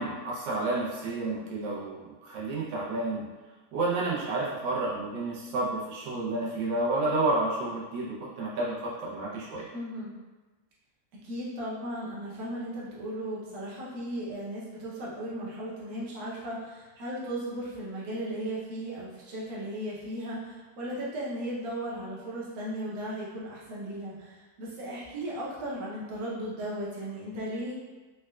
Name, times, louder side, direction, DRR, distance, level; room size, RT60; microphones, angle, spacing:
voice 1, 0.0-3.2 3.7-9.6, right 2 dB, 90° right, -6 dB, 1.5 m, -30 dB
voice 2, 9.7-10.1 11.2-27.7, right 1 dB, 60° right, -6 dB, 1.2 m, -36 dB
4.1 x 2.3 x 2.3 m, 1.2 s
omnidirectional pair, 2.0 m